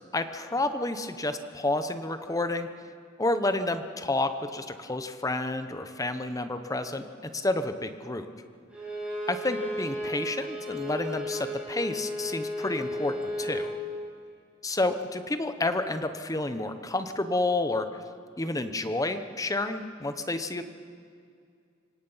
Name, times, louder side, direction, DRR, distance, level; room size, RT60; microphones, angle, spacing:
voice 1, 0.1-2.7 3.2-8.3 9.3-13.7 14.6-18.0 18.4-20.6, left 2 dB, 15° left, 9 dB, 0.9 m, -30 dB
Bowed string instrument, 8.7-13.7, left 1 dB, 5° right, 7.1 m, -34 dB
25.5 x 18.0 x 5.7 m, 2.3 s
head